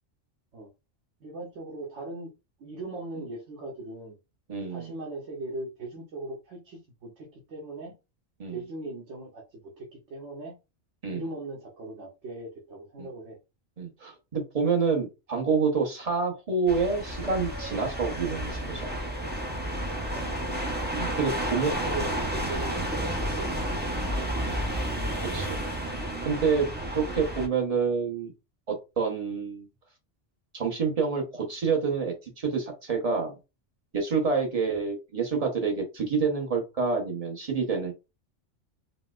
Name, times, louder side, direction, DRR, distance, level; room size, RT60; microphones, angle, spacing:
voice 1, 1.2-2.3 2.6-4.2 4.7-7.9 8.5-10.5 11.1-13.4 20.1-20.6 21.5-23.9 34.5-34.7, right 2 dB, 80° right, 1.1 m, -39 dB
voice 2, 4.5-4.9 8.4-8.6 11.0-11.2 13.0-13.1 13.8-18.9 20.9-21.7 24.4-24.5 25.2-25.6 26.2-26.7 26.9-28.3 28.7-29.7 30.5-33.4 33.9-37.9, right 5 dB, 35° right, 0.7 m, -28 dB
sound 1, 16.7-27.5, right 1 dB, 15° right, 0.3 m, -31 dB
4.1 x 2.0 x 2.3 m
omnidirectional pair, 1.3 m